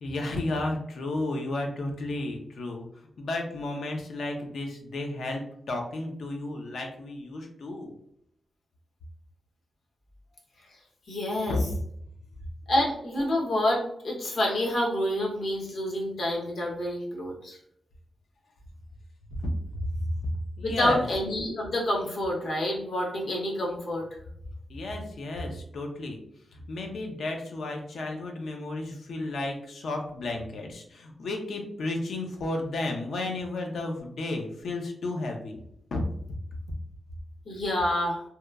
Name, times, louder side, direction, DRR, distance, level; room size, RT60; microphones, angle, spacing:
voice 1, 0.0-2.9 3.2-7.9 11.5-11.6 19.4-20.1 20.6-21.1 24.7-26.2 26.5-35.6 35.9-36.0, left 2 dB, 80° left, 2 dB, 0.5 m, -33 dB
voice 2, 11.1-11.6 12.7-17.6 20.6-24.1 37.5-38.2, left 1 dB, 60° left, -2 dB, 0.8 m, -28 dB
2.8 x 2.2 x 2.3 m, 0.71 s
wide cardioid pair, 130°, 0 cm